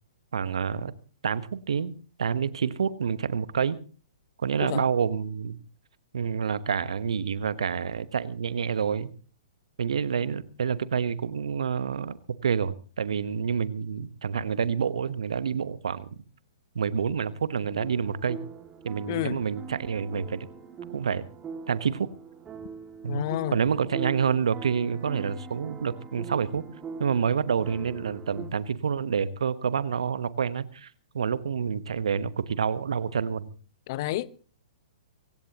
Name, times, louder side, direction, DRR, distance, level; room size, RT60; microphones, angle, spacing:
voice 1, 0.3-0.9 1.2-1.9 2.2-3.8 4.4-5.6 6.1-9.1 9.8-16.2 16.7-18.4 18.8-20.5 20.9-21.3 21.7-22.1 23.0-26.6 27.0-33.5, right 6 dB, 70° right, 1.1 m, -28 dB
sound 1, 17.8-28.5, right 6 dB, 20° right, 2.3 m, -42 dB
voice 2, 19.1-19.4 23.1-23.6 33.9-34.3, left 15 dB, 45° left, 0.8 m, -30 dB
24.5 x 16.0 x 3.0 m
figure-of-eight pair, 115°, 3 cm